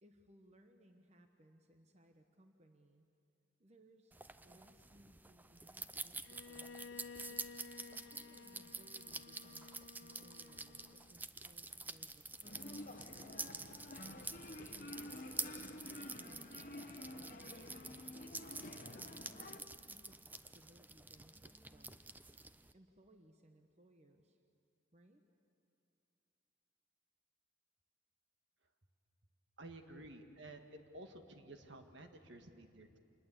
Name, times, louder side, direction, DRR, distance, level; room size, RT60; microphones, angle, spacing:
voice 1, 0.0-3.1 3.6-13.1 13.8-15.3 15.8-18.3 18.9-22.4 22.7-24.4 24.9-25.2, right 1 dB, 35° right, 5 dB, 1.1 m, -66 dB
sound 1, 4.1-22.7, right 3 dB, 10° right, 0.5 m, -49 dB
Bowed string instrument, 6.2-11.3, left 4 dB, 65° left, 0.6 m, -54 dB
sound 2, 12.4-19.6, left 1 dB, 45° left, 1.1 m, -50 dB
voice 2, 29.6-30.6 30.9-33.0, right 2 dB, 65° right, 6 dB, 1.7 m, -53 dB
26.5 x 20.5 x 8.4 m, 2.7 s
head